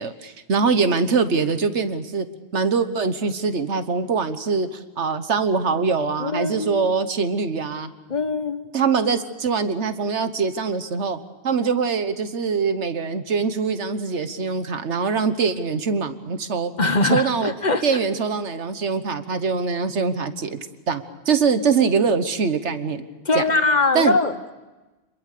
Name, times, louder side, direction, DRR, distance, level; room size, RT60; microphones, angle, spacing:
voice 1, 0.0-2.3 2.5-7.9 8.7-11.2 11.4-16.7 17.0-17.5 17.8-23.1 23.3-23.4 23.9-24.2, right 5 dB, 85° right, 10 dB, 1.5 m, -23 dB
voice 2, 6.2-6.9 8.1-8.7 16.8-18.0 23.3-24.5, left 3 dB, 40° left, 10 dB, 1.2 m, -22 dB
27.0 x 22.0 x 6.7 m, 1.1 s
omnidirectional pair, 1.2 m